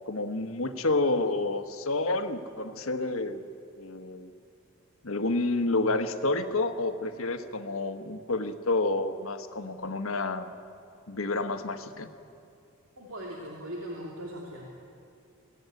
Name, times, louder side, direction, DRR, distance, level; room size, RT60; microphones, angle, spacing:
voice 1, 0.1-3.4 3.8-4.3 5.0-10.5 11.1-12.1, left 2 dB, 70° left, 8 dB, 1.3 m, -29 dB
voice 2, 13.0-14.7, equal, 65° right, -2 dB, 2.7 m, -39 dB
23.0 x 16.0 x 9.4 m, 2.6 s
head